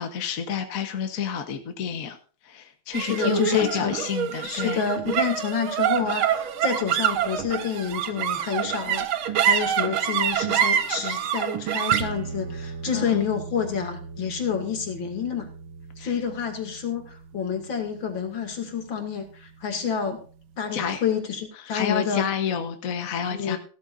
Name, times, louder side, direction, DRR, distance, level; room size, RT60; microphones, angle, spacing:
voice 1, 0.0-2.2 2.4-4.8 13.0-13.1 16.0-16.1 20.7-21.0 21.6-23.6, left 7 dB, 50° left, 6 dB, 1.4 m, -29 dB
sound 1, 2.9-19.5, right 9 dB, 90° right, 1.9 m, -28 dB
voice 2, 3.0-4.0 4.4-15.5 16.0-20.2 20.6-22.3 23.3-23.6, left 7 dB, 70° left, 5 dB, 3.1 m, -28 dB
16.0 x 13.0 x 2.6 m, 0.40 s
omnidirectional pair, 2.2 m